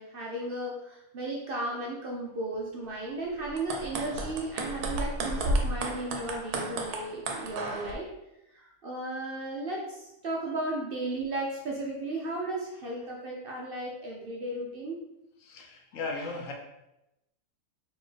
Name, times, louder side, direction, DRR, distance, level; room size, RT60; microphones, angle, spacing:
voice 1, 0.0-8.1 8.5-15.0, right 2 dB, 60° right, -2 dB, 0.6 m, -35 dB
sound 1, 3.4-7.9, right 2 dB, 85° right, 1.2 m, -32 dB
voice 2, 15.4-16.5, left 3 dB, 70° left, 1 dB, 1.0 m, -36 dB
4.2 x 2.9 x 3.2 m, 0.90 s
omnidirectional pair, 1.6 m